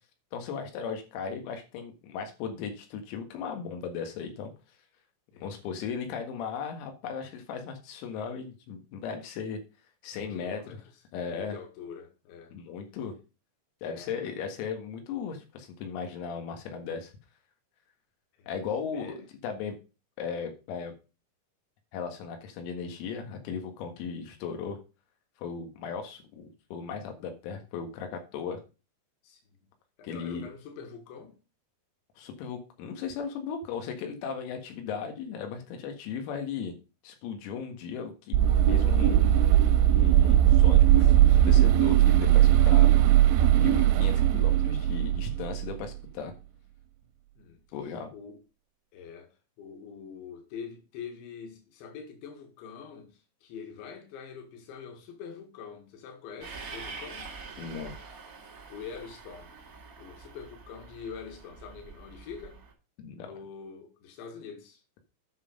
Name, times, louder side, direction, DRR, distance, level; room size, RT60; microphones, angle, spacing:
voice 1, 0.3-4.5 5.4-9.6 10.0-10.6 11.1-11.5 12.5-13.1 13.8-17.1 18.5-19.8 20.2-20.9 21.9-24.8 25.4-28.6 30.0-30.5 32.2-36.7 37.0-38.4 38.7-39.2 39.9-43.0 43.5-46.3 47.7-48.1 57.6-57.9 63.0-63.3, left 6 dB, 90° left, 4.5 m, -36 dB
voice 2, 10.3-10.8 11.3-12.6 13.8-14.1 18.4-18.6 18.9-19.2 29.2-29.4 30.0-31.4 47.4-47.6 48.1-48.4 48.9-49.3 49.6-57.3 58.7-59.6 60.0-62.6 63.1-64.8, left 6 dB, 65° left, 3.9 m, -44 dB
sound 1, 38.3-45.7, right 12 dB, 85° right, 3.3 m, -20 dB
Train, 56.4-62.7, right 4 dB, 65° right, 0.8 m, -45 dB
9.6 x 5.7 x 5.2 m
omnidirectional pair, 6.0 m